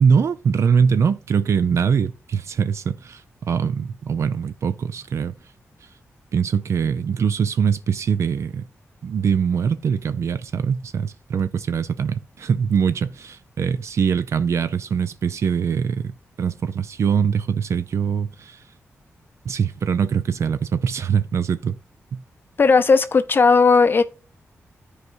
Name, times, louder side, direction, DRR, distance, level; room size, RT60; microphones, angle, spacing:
voice 1, 0.0-5.3 6.3-8.7 9.0-16.1 16.4-18.6 19.4-21.8 22.1-22.2, right 6 dB, 65° right, 0.4 m, -22 dB
voice 2, 22.6-24.0, left 4 dB, 45° left, 0.5 m, -15 dB
13.5 x 4.8 x 2.6 m
wide cardioid pair, 95°, 5 cm